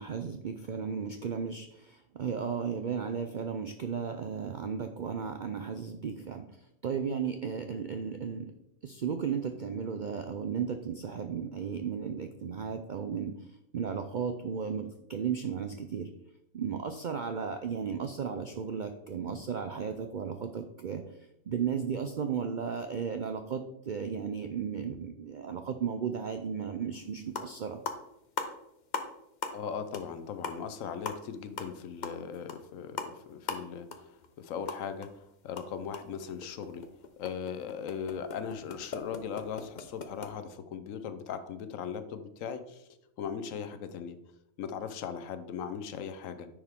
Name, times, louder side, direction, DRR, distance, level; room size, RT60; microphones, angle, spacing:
voice 1, 0.0-6.5 6.8-8.5 8.8-13.4 13.7-16.1 16.5-21.0 21.5-27.8, right 6 dB, 65° right, 7 dB, 0.4 m, -34 dB
sound 1, 26.9-27.0 27.3-27.6 27.8-29.1 29.4-29.7 29.9-30.1 30.4-35.1 35.4-40.3, left 5 dB, 45° left, 0.7 m, -39 dB
voice 2, 29.5-36.8 37.2-42.9 43.2-44.2 44.6-46.5, left 7 dB, 75° left, 10 dB, 1.1 m, -39 dB
9.8 x 4.8 x 3.6 m, 0.81 s
omnidirectional pair, 1.4 m